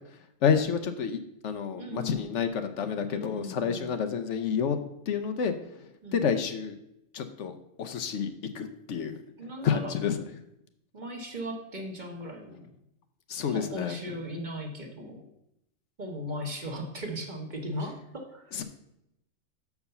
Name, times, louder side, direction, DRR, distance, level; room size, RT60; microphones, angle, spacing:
voice 1, 0.4-4.8 5.1-5.5 6.1-6.7 7.1-9.2 9.6-10.2 13.3-14.0 18.5-18.6, left 7 dB, 70° left, 8 dB, 0.9 m, -29 dB
voice 2, 1.8-2.2 3.1-3.9 6.0-6.3 9.4-10.0 10.9-12.7 13.4-15.2 16.0-18.5, equal, 40° right, 2 dB, 1.1 m, -38 dB
6.6 x 4.7 x 6.7 m, 0.82 s
omnidirectional pair, 1.3 m